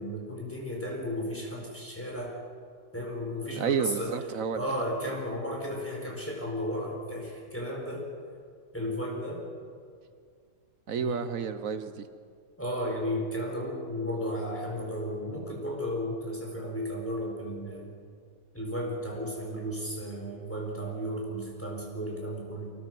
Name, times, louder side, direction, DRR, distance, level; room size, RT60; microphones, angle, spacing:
voice 1, 0.0-2.3 2.9-4.2 4.5-8.1 8.7-9.4 10.9-11.3 12.6-17.9 18.5-22.7, equal, 5° left, -2 dB, 4.5 m, -34 dB
voice 2, 3.6-4.6 10.9-12.1, right 7 dB, 60° right, 11 dB, 1.1 m, -30 dB
24.5 x 18.5 x 6.1 m, 2.2 s
omnidirectional pair, 1.8 m